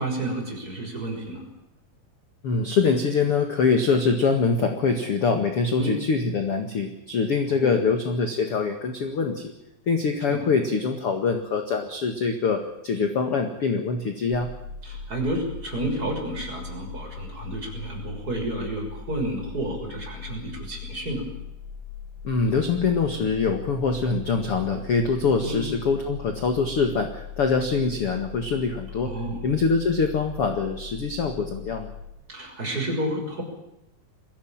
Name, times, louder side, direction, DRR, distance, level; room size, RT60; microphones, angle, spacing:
voice 1, 0.0-1.4 5.8-6.0 7.5-7.8 10.3-10.5 14.8-21.3 25.4-25.7 29.0-29.4 32.3-33.4, right 1 dB, 20° right, 1 dB, 6.7 m, -30 dB
voice 2, 2.4-9.5 9.9-14.5 22.2-29.1 29.4-31.9, left 4 dB, 45° left, 6 dB, 2.2 m, -24 dB
sound 1, 14.3-32.0, left 7 dB, 40° right, 4.5 m, -40 dB
22.5 x 16.5 x 8.9 m, 0.86 s
omnidirectional pair, 4.7 m